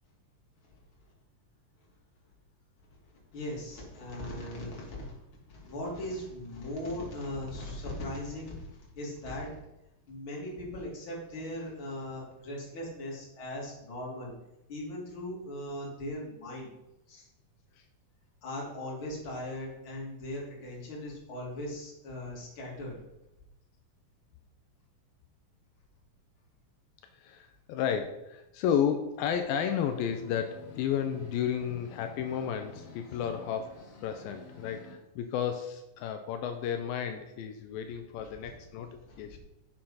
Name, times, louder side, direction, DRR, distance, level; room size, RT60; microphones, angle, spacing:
voice 1, 3.3-5.2 5.5-8.7 9.0-9.6 10.1-14.3 14.7-16.7 17.1-17.3 18.4-22.9 38.4-38.5 39.1-39.3, left 1 dB, 35° left, -4 dB, 3.1 m, -39 dB
voice 2, 27.1-39.4, left 8 dB, 85° left, 7 dB, 2.4 m, -32 dB
sound 1, 29.2-34.9, left 4 dB, 60° left, 2.6 m, -50 dB
7.7 x 6.6 x 5.7 m, 0.91 s
omnidirectional pair, 4.1 m